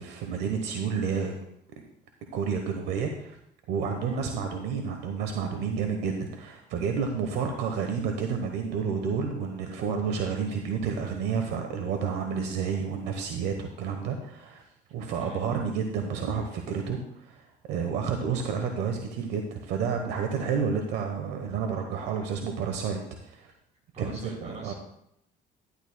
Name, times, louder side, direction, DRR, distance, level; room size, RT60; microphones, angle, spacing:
voice 1, 0.0-1.4 2.3-3.4 3.7-14.6 14.9-23.5 24.0-24.7, right 6 dB, 85° right, 4 dB, 1.0 m, -30 dB
voice 2, 23.9-24.7, right 2 dB, 45° right, -2 dB, 3.8 m, -45 dB
11.0 x 11.0 x 2.2 m, 0.76 s
cardioid pair, 110°, 17 cm